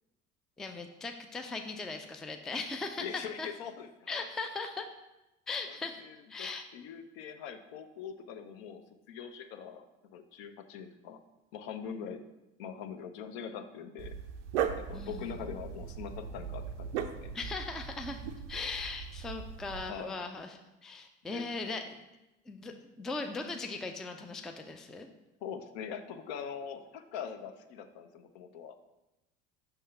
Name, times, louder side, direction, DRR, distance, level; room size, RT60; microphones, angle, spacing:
voice 1, 0.6-3.0 3.4-3.5 4.1-4.9 5.5-6.0 6.3-6.6 14.9-15.4 17.3-18.2 18.5-22.0 22.5-25.1, left 3 dB, ahead, 5 dB, 0.3 m, -39 dB
voice 2, 3.0-4.2 5.7-8.8 9.1-9.9 10.1-11.2 11.5-12.2 12.6-14.2 14.7-17.3 19.8-20.2 21.3-21.7 25.4-28.8, left 7 dB, 60° left, 8 dB, 0.7 m, -43 dB
Dog, 14.0-19.9, right 8 dB, 70° right, 0.5 m, -38 dB
5.6 x 3.6 x 5.5 m, 0.98 s
figure-of-eight pair, 65°, 37 cm